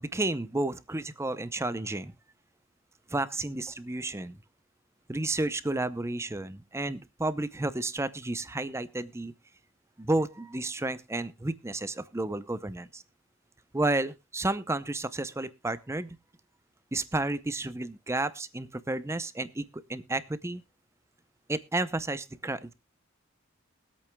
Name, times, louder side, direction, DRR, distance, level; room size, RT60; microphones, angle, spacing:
voice 1, 0.0-2.1 3.1-4.4 5.1-9.3 10.0-13.0 13.7-16.2 16.9-19.6 19.9-20.6 21.5-22.7, right 2 dB, 15° right, 14 dB, 0.6 m, -31 dB
22.5 x 8.5 x 2.2 m, 0.23 s
head